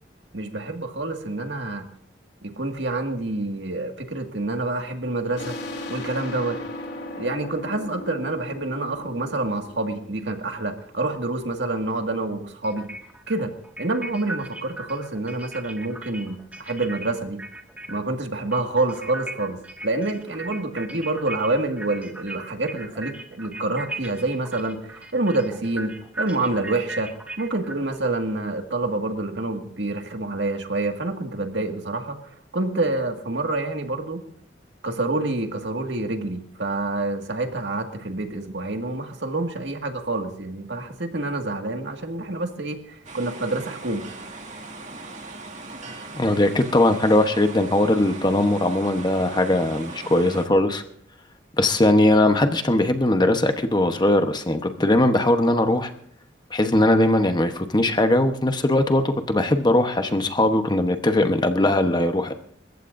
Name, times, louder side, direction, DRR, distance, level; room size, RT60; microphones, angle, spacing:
voice 1, 0.3-1.9 2.4-5.5 5.9-6.6 7.2-12.9 13.3-13.5 13.8-16.4 16.7-17.4 17.9-27.1 27.4-32.2 32.5-34.2 34.8-44.1, right 2 dB, 70° right, 4 dB, 2.0 m, -27 dB
sound 1, 5.4-10.7, left 1 dB, 60° left, 2.7 m, -37 dB
sound 2, 11.4-11.5 12.6-18.1 18.4-28.6, right 2 dB, 10° right, 1.9 m, -38 dB
sound 3, 43.0-50.5, right 3 dB, 40° right, 2.1 m, -39 dB
voice 2, 46.1-50.8 51.6-55.9 56.5-62.3, left 1 dB, 25° left, 7 dB, 1.0 m, -20 dB
29.5 x 15.0 x 2.6 m, 0.65 s
head